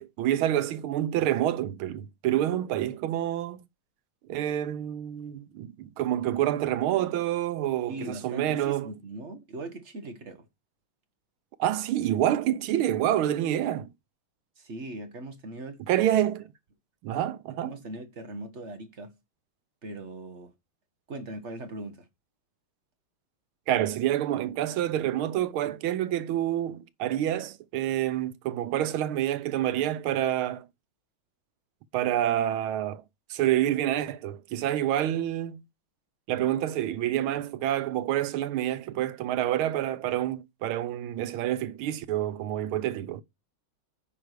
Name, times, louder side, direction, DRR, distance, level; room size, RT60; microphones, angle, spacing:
voice 1, 0.0-3.6 4.3-8.9 11.6-13.9 15.9-16.5 17.0-17.8 23.7-30.7 31.9-33.0 33.3-35.6 36.3-43.2, right 12 dB, 85° right, 1.6 m, -28 dB
voice 2, 7.9-10.5 14.6-15.8 17.6-19.1 19.8-20.5 21.1-22.1, right 2 dB, 40° right, 1.3 m, -40 dB
9.6 x 4.6 x 6.5 m
omnidirectional pair, 2.3 m